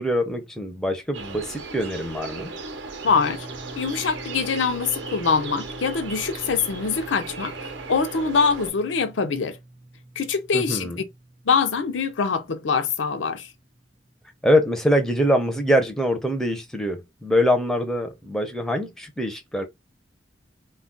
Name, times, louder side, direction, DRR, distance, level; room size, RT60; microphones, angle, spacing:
voice 1, 0.0-2.5 10.5-11.0 14.4-19.6, equal, 5° left, 0.5 m, -23 dB
sound 1, 1.1-8.7, right 3 dB, 75° right, 0.7 m, -36 dB
voice 2, 3.0-3.5 3.8-9.6 10.2-10.9 11.5-13.5, left 5 dB, 85° left, 0.5 m, -24 dB
sound 2, 3.1-14.8, right 2 dB, 35° right, 0.7 m, -46 dB
2.3 x 2.2 x 3.7 m
head